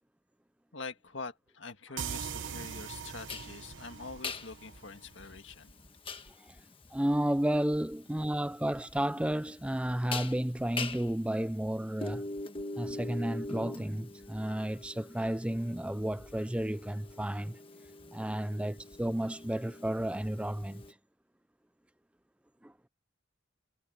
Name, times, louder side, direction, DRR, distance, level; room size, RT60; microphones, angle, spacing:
voice 1, 0.7-5.7, left 4 dB, 75° left, 1.8 m, -45 dB
sound 1, 2.0-5.5, right 7 dB, 75° right, 0.9 m, -41 dB
sound 2, 3.3-20.9, left 3 dB, 30° left, 1.3 m, -43 dB
voice 2, 6.9-12.2 12.8-17.6 18.1-20.8 22.6-22.7, right 1 dB, 5° right, 0.4 m, -32 dB
head